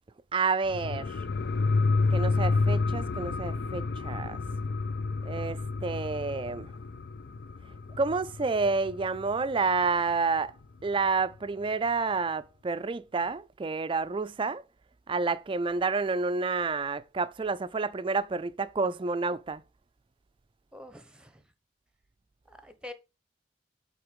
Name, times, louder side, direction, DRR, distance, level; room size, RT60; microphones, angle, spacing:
voice 1, 0.3-1.1 2.1-4.4 5.2-6.7 8.0-10.5 10.8-14.6 15.1-19.6, right 4 dB, 30° right, 0.4 m, -29 dB
sound 1, 0.6-9.8 10.1-10.2, left 3 dB, 65° left, 0.5 m, -30 dB
voice 2, 20.7-21.4 22.4-22.9, left 1 dB, 5° right, 1.0 m, -46 dB
7.9 x 4.0 x 5.2 m
head